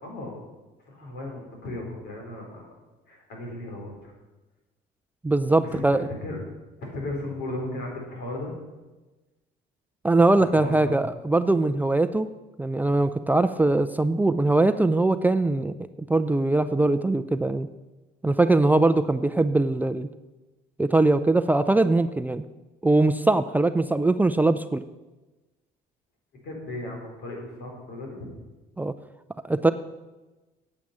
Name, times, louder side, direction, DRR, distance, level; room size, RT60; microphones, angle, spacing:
voice 1, 0.0-0.4 0.8-2.7 3.1-4.1 5.7-5.9 6.2-6.4 6.8-8.5 10.4-11.0 26.4-28.3, left 1 dB, 75° left, 0 dB, 4.9 m, -35 dB
voice 2, 5.2-6.0 10.0-12.3 12.6-15.7 16.1-17.7 18.2-20.1 20.8-22.4 22.8-24.8 28.8-28.9 29.4-29.7, right 2 dB, 10° right, 10 dB, 0.5 m, -21 dB
9.0 x 8.8 x 8.6 m, 1.1 s
cardioid pair, 110°, 17 cm